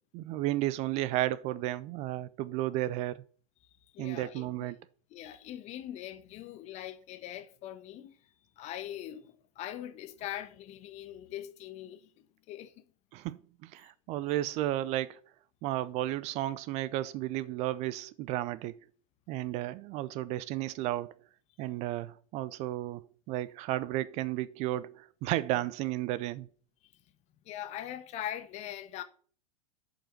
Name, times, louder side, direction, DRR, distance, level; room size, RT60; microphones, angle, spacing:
voice 1, 0.1-3.2 4.0-4.8 13.1-15.2 15.6-18.8 19.3-21.1 21.6-26.5, right 15 dB, 35° right, 0.5 m, -33 dB
voice 2, 3.9-4.7 5.1-8.2 8.6-12.7 27.4-29.0, left 12 dB, 35° left, 1.1 m, -42 dB
7.3 x 5.4 x 6.6 m
figure-of-eight pair, 90°, 19 cm